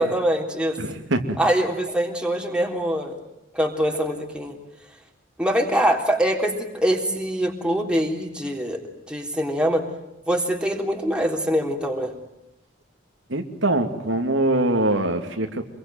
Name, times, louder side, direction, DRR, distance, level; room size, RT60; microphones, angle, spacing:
voice 1, 0.0-0.8 1.4-3.2 3.5-4.5 5.4-8.8 9.1-9.9 10.3-12.1, equal, 5° right, 2 dB, 3.5 m, -23 dB
voice 2, 0.8-1.4 13.3-15.6, right 1 dB, 75° right, 5 dB, 2.6 m, -23 dB
27.0 x 22.5 x 9.1 m, 0.89 s
head